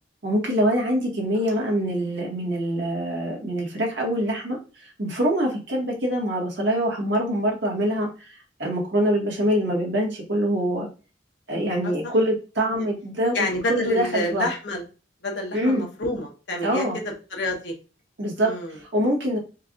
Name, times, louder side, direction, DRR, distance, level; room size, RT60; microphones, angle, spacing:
voice 1, 0.2-8.3 8.6-10.9 11.5-13.4 13.7-14.5 15.5-15.8 16.6-17.0 18.2-18.5 18.8-19.4, equal, 75° right, -1 dB, 1.7 m, -24 dB
voice 2, 13.3-14.8 15.2-17.0 17.3-17.7 18.4-18.8, left 1 dB, 70° left, 1 dB, 1.3 m, -28 dB
4.6 x 3.4 x 2.5 m, 0.34 s
head